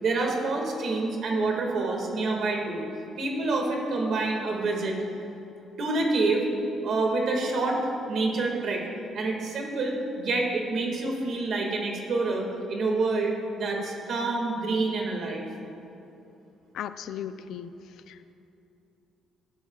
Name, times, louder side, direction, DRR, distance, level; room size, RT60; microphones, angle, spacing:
voice 1, 0.0-2.8 3.2-5.0 5.8-6.4 6.8-7.8 8.1-8.8 9.1-15.5, right 3 dB, 50° right, 1 dB, 1.9 m, -27 dB
voice 2, 16.7-17.7 18.1-18.3, left 9 dB, 65° left, 12 dB, 0.4 m, -36 dB
18.0 x 13.5 x 2.4 m, 2.8 s
cardioid pair, 170°, 0 cm